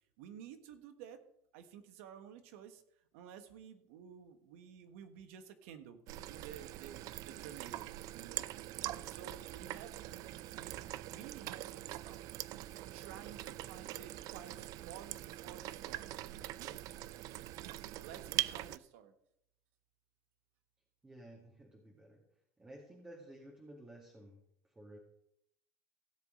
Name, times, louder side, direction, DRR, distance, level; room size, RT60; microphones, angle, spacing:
voice 1, 0.2-1.2 1.5-2.8 3.1-6.0 6.3-12.2 12.9-16.1 16.5-16.8 17.6-19.1, right 8 dB, 80° right, 9 dB, 1.4 m, -53 dB
sound 1, 6.1-18.8, right 15 dB, 55° right, 0.5 m, -43 dB
voice 2, 21.0-22.2 22.6-25.0, right 1 dB, 10° right, 0 dB, 2.0 m, -54 dB
16.5 x 7.4 x 3.9 m, 0.77 s
supercardioid pair, 110°, 7 cm